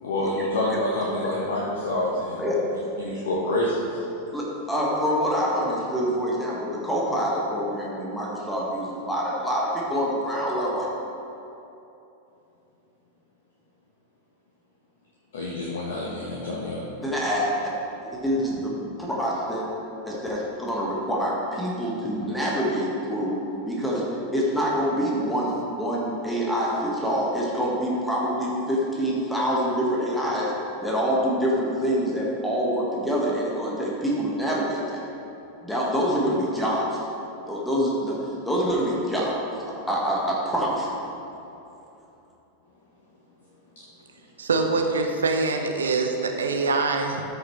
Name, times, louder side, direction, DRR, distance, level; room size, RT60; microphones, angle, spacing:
voice 1, 0.0-2.4 3.0-3.8 15.3-16.8, left 1 dB, 60° left, -4 dB, 1.2 m, -27 dB
voice 2, 2.4-2.9 4.3-10.9 17.0-17.7 18.0-18.7 19.0-19.6 20.0-23.3 23.6-24.0 24.3-30.5 30.8-35.0 35.6-37.0 37.5-38.2 38.4-40.9, equal, 5° left, -5 dB, 1.5 m, -26 dB
voice 3, 44.4-47.2, right 3 dB, 70° right, 4 dB, 0.7 m, -24 dB
13.5 x 6.5 x 3.1 m, 2.9 s
figure-of-eight pair, 90°, 0 cm